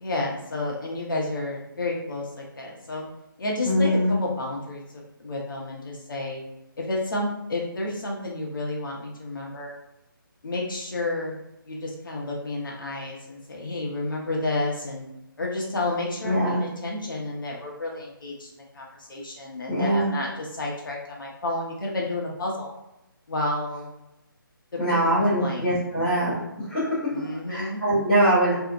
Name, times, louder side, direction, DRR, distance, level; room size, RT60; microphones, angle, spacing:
voice 1, 0.0-3.1 3.4-6.4 6.8-9.7 10.4-11.4 11.7-15.0 15.4-22.7 23.3-23.9 24.9-25.7 27.1-27.8, left 2 dB, 65° left, -2 dB, 0.8 m, -31 dB
voice 2, 3.6-4.2 16.2-16.6 19.7-20.1 24.8-26.4 26.7-28.5, equal, 5° left, -15 dB, 0.5 m, -23 dB
2.7 x 2.1 x 2.4 m, 0.91 s
hypercardioid pair, 170°, 12 cm